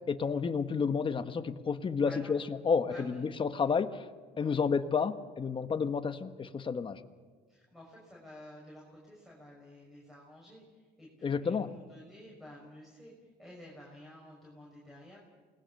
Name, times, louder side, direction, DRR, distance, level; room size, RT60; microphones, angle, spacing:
voice 1, 0.1-4.0 4.4-7.0 11.2-11.7, left 5 dB, 30° left, 9 dB, 1.3 m, -31 dB
voice 2, 2.0-2.3 2.9-3.2 4.4-4.6 7.5-13.1 13.4-15.2, left 1 dB, ahead, -3 dB, 6.3 m, -52 dB
28.5 x 20.0 x 6.6 m, 1.4 s
cardioid pair, 110°, 17 cm